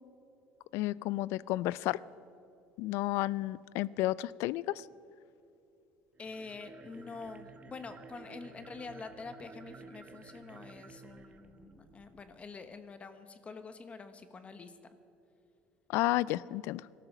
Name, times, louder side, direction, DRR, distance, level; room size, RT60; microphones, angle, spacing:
voice 1, 0.7-2.0 2.8-4.9 15.9-16.9, left 17 dB, 75° left, 21 dB, 0.3 m, -32 dB
sound 1, 6.1-12.4, right 4 dB, 30° right, 1.2 m, -53 dB
voice 2, 6.2-14.8, left 4 dB, 30° left, 10 dB, 1.0 m, -46 dB
18.5 x 13.0 x 6.0 m, 2.7 s
cardioid pair, 105°, 4 cm